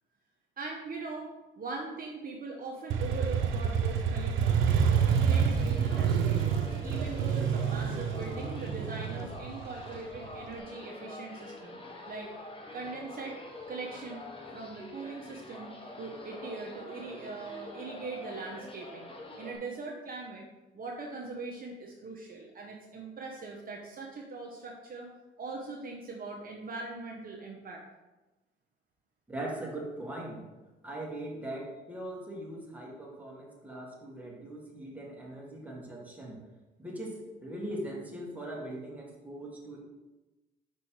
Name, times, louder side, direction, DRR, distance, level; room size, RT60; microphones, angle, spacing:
voice 1, 0.6-1.3 1.5-6.4 6.8-11.8 12.1-12.3 12.7-13.4 13.7-14.3 14.5-15.7 16.0-20.5 20.7-25.1 25.4-27.8, right 3 dB, 45° right, 0 dB, 0.9 m, -41 dB
Motorcycle, 2.9-10.5, right 7 dB, 80° right, 0.6 m, -28 dB
sound 1, 4.9-19.6, left 2 dB, 25° left, 1.2 m, -46 dB
voice 2, 29.3-30.4 30.8-36.4 36.8-39.8, right 1 dB, 5° right, -3 dB, 1.8 m, -40 dB
5.3 x 4.3 x 4.7 m, 1.1 s
cardioid pair, 90°, 20 cm